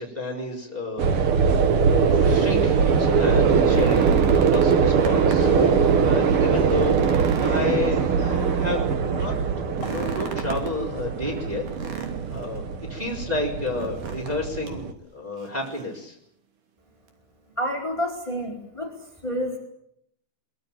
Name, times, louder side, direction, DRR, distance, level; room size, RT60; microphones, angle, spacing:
voice 1, 0.0-1.6 1.9-5.5 6.0-7.0 7.4-9.3 9.8-11.6 12.3-12.6 12.9-16.1, left 2 dB, 10° right, 0 dB, 4.5 m, -31 dB
sound 1, 1.0-14.9, right 6 dB, 55° right, 1.9 m, -21 dB
sound 2, 3.4-5.6 6.0-6.1 6.6-8.5 9.7-10.8 11.7-12.6 13.7-14.4 14.7-14.8 15.4-16.0 17.1-17.2, right 7 dB, 80° right, 4.3 m, -37 dB
sound 3, 5.4-11.9, left 3 dB, 30° left, 4.3 m, -38 dB
voice 2, 17.6-18.9 19.2-19.6, equal, 10° left, 2 dB, 4.3 m, -28 dB
23.0 x 22.5 x 9.0 m, 0.75 s
omnidirectional pair, 3.6 m